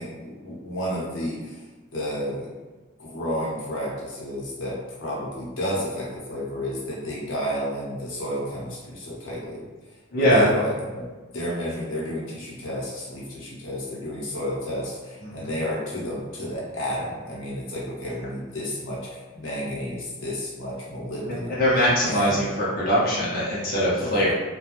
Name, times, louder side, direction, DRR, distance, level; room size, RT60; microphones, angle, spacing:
voice 1, 0.0-1.6 1.9-2.5 3.0-9.6 10.1-11.1 11.3-21.6 22.0-22.5 24.0-24.3, equal, 80° left, -5 dB, 0.8 m, -31 dB
voice 2, 10.1-10.5 15.2-15.5 21.3-24.3, equal, 45° left, -7 dB, 0.7 m, -22 dB
3.0 x 2.2 x 2.5 m, 1.3 s
head